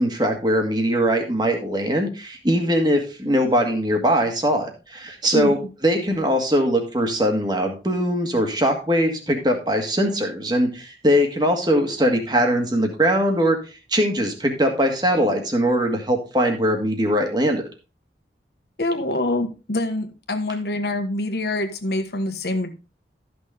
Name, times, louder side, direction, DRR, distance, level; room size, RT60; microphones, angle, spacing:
voice 1, 0.0-17.7, equal, 25° right, 4 dB, 1.7 m, -21 dB
voice 2, 5.3-5.7 18.8-22.7, left 2 dB, 65° left, 6 dB, 1.4 m, -25 dB
13.0 x 6.4 x 3.5 m, 0.32 s
head